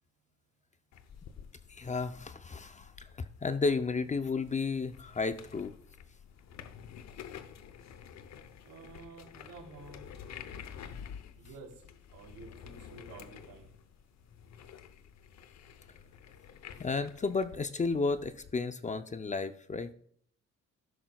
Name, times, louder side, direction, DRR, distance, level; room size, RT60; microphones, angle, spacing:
sound 1, 0.9-18.5, left 8 dB, 65° left, 0.8 m, -50 dB
voice 1, 1.7-2.9 3.4-5.7 16.8-19.9, left 4 dB, 25° left, 11 dB, 0.5 m, -32 dB
voice 2, 8.6-10.1 11.3-11.8 12.1-13.7, right 4 dB, 90° right, -2 dB, 3.1 m, -50 dB
15.0 x 6.1 x 2.3 m, 0.64 s
cardioid pair, 90°, 30 cm